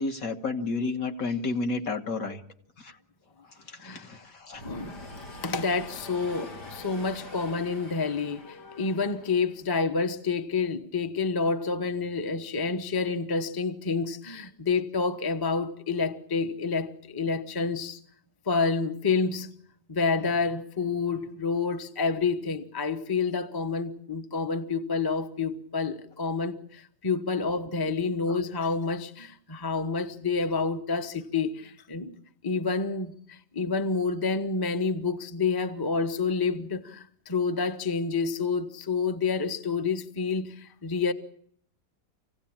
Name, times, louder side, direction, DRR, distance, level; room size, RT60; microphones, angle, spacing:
voice 1, 0.0-2.4 2.8-2.9 3.4-4.6 28.3-28.4, left 3 dB, 55° left, 1.8 m, -31 dB
sound 1, 4.5-9.7, left 2 dB, 70° left, 3.5 m, -45 dB
voice 2, 4.6-4.9 5.4-18.0 18.5-19.5 19.9-32.1 32.4-41.1, left 4 dB, 20° left, 0.8 m, -28 dB
26.0 x 17.0 x 8.7 m
omnidirectional pair, 1.9 m